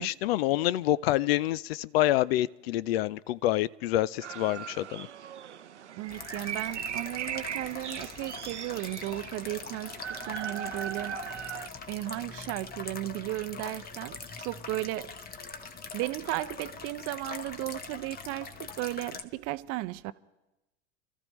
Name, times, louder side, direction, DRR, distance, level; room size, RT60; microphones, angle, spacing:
voice 1, 0.0-5.1, left 14 dB, 60° left, 0.5 m, -27 dB
sound 1, 4.2-11.7, right 9 dB, 85° right, 0.6 m, -39 dB
voice 2, 6.0-11.6 11.9-15.1 15.9-20.1, right 18 dB, 45° right, 0.6 m, -35 dB
sound 2, 6.1-19.2, left 5 dB, 25° left, 1.1 m, -43 dB
28.0 x 14.0 x 3.1 m
hypercardioid pair, 85°, 34 cm